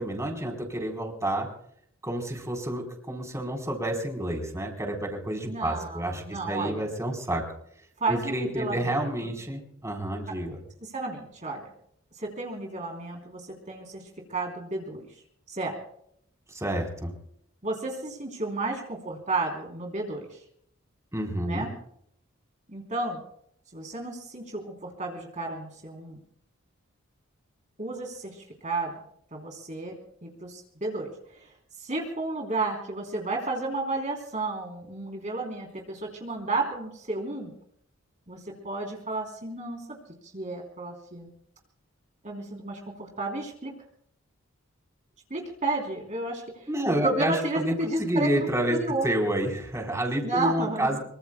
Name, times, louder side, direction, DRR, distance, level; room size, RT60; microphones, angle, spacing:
voice 1, 0.0-1.5 2.0-7.4 8.1-10.6 16.5-17.1 21.1-21.7 46.7-48.8 49.0-51.0, right 1 dB, 15° right, 2 dB, 3.9 m, -29 dB
voice 2, 5.4-6.9 8.0-9.3 10.8-11.7 12.1-14.0 14.3-15.2 15.5-15.8 17.6-20.4 21.4-21.7 22.7-23.2 23.7-26.2 27.8-29.0 29.3-37.5 38.3-40.0 40.2-41.3 42.2-43.7 45.3-46.7 47.0-48.3 48.7-49.0 50.2-50.9, right 2 dB, 35° right, 0 dB, 3.3 m, -32 dB
25.0 x 24.0 x 2.2 m, 0.69 s
head